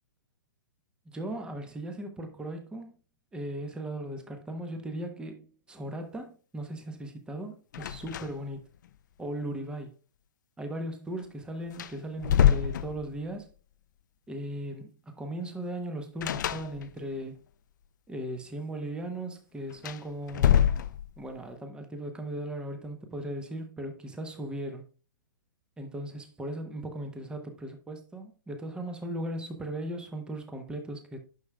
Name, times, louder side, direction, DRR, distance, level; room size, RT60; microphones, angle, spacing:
voice 1, 1.1-2.9 3.3-8.6 9.2-9.9 10.6-13.5 14.3-17.3 18.1-20.6 21.2-24.8 25.8-31.2, right 1 dB, 10° right, 1.0 m, -37 dB
sound 1, 7.7-8.6 8.8-9.0 11.2-11.3 11.7-13.4 16.2-17.2 19.7-21.4, left 10 dB, 65° left, 0.5 m, -26 dB
9.5 x 6.3 x 2.3 m
hypercardioid pair, 130°, 11 cm